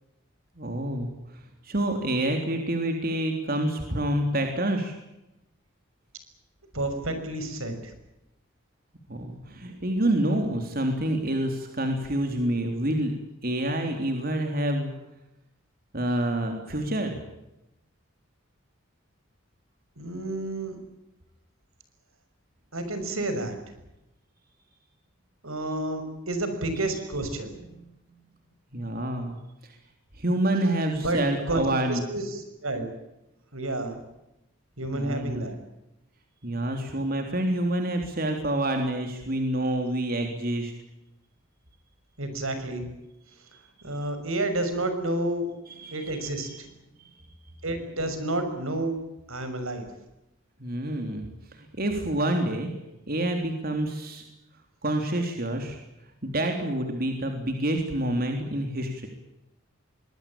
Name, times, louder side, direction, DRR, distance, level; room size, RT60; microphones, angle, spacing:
voice 1, 0.6-1.1 1.6-5.0 9.1-13.1 13.4-14.9 15.9-17.2 27.7-27.9 28.7-29.3 29.6-29.8 30.2-32.0 34.9-35.4 36.4-40.7 45.8-46.2 46.5-46.6 47.0-47.1 50.6-51.2 51.8-52.7 53.1-54.2 54.8-55.8 56.2-59.1, right 1 dB, 45° right, 4 dB, 3.5 m, -27 dB
voice 2, 6.7-7.9 9.5-9.8 20.0-20.8 22.7-23.6 25.4-27.5 31.0-31.2 31.5-32.9 33.5-34.0 34.8-35.6 42.2-42.9 43.8-45.5 45.9-46.7 47.6-48.9 49.3-49.9, right 2 dB, 80° right, 8 dB, 6.1 m, -30 dB
25.0 x 20.5 x 8.9 m, 0.90 s
head